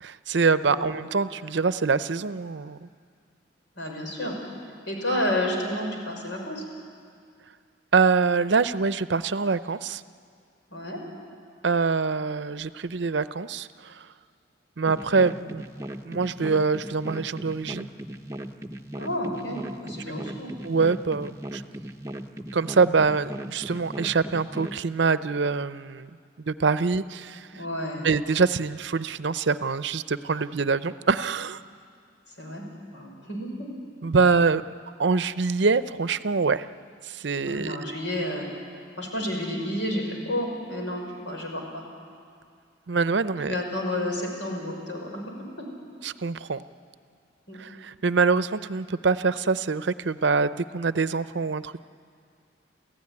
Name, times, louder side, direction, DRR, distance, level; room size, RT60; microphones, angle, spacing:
voice 1, 0.0-2.9 7.9-10.0 11.6-14.1 14.8-15.6 16.0-17.9 20.0-20.1 20.6-21.6 22.5-26.1 26.4-27.6 28.0-31.6 34.0-34.6 35.0-36.7 37.0-37.9 42.9-43.6 46.0-46.6 47.6-51.8, right 4 dB, 70° right, 14 dB, 0.6 m, -24 dB
voice 2, 3.8-4.4 4.9-6.6 10.7-11.0 19.0-20.5 27.5-28.1 32.4-32.7 32.9-33.7 37.4-38.5 39.0-41.8 43.5-45.7 47.5-47.6, left 1 dB, 85° left, 1 dB, 5.6 m, -31 dB
sound 1, 14.9-24.8, right 1 dB, 15° right, 0.8 m, -37 dB
29.0 x 15.0 x 9.7 m, 2.2 s
head